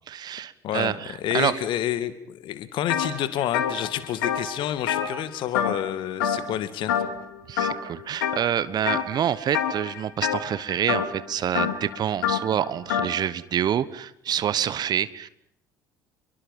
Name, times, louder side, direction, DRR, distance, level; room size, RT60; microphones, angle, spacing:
voice 1, 0.1-1.6 7.5-15.3, right 10 dB, 40° right, 17 dB, 1.2 m, -27 dB
voice 2, 0.6-6.9, left 11 dB, 55° left, 13 dB, 2.2 m, -29 dB
sound 1, 2.9-3.1 3.4-5.9 6.2-6.6 6.9-7.2 7.6-8.4 8.9-9.2 9.5-13.1, left 8 dB, 70° left, 2.9 m, -27 dB
28.0 x 23.0 x 5.4 m, 0.73 s
figure-of-eight pair, 60°, 10 cm